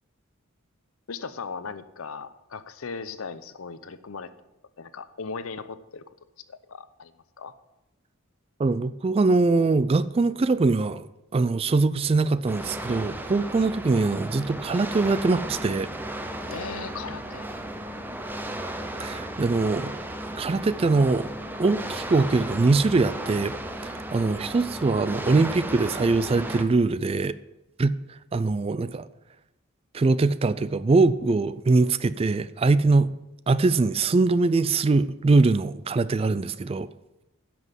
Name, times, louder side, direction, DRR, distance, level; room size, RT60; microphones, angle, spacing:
voice 1, 1.1-4.3 4.8-6.0 6.5-7.1 7.4-7.5 13.6-13.7 16.5-17.5, left 5 dB, 75° left, 0.7 m, -37 dB
voice 2, 8.6-15.9 19.0-20.0 20.4-21.3 21.6-23.6 23.8-27.4 27.8-27.9 28.3-29.1 29.9-33.1 33.5-36.9, right 3 dB, 25° right, 0.3 m, -22 dB
sound 1, 12.5-26.6, right 1 dB, 10° right, 0.7 m, -35 dB
10.5 x 6.2 x 7.4 m
head